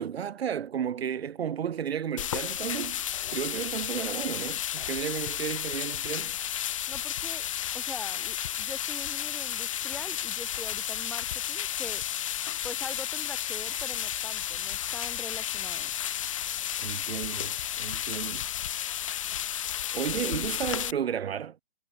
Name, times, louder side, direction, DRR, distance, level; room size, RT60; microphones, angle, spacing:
voice 1, 0.0-3.0 3.3-6.3 16.8-18.5 19.9-21.6, right 8 dB, 80° right, 1.1 m, -33 dB
sound 1, 2.2-20.9, left 11 dB, 30° left, 0.9 m, -32 dB
voice 2, 6.9-7.5 7.7-12.0 12.6-15.9 20.2-20.6, left 3 dB, 5° left, 2.2 m, -43 dB
hypercardioid pair, 175°, 31 cm